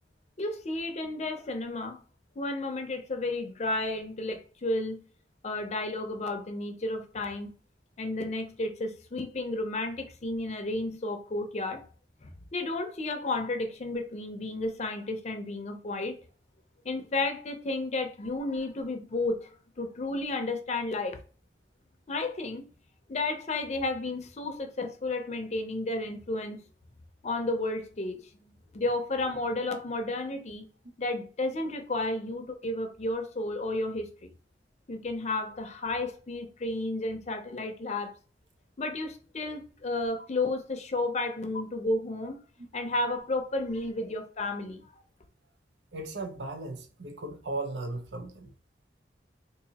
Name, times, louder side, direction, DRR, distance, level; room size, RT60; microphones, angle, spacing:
voice 1, 0.4-2.0 2.4-5.0 5.4-7.5 8.0-11.8 12.2-16.2 16.8-19.5 19.8-21.2 22.1-22.6 23.1-26.6 27.2-28.3 28.7-30.7 31.0-34.3 34.9-38.1 38.8-42.4 42.7-44.8, left 2 dB, 40° left, 0.5 m, -32 dB
voice 2, 45.9-48.5, right 2 dB, 75° right, 0.6 m, -36 dB
3.9 x 2.5 x 2.8 m
head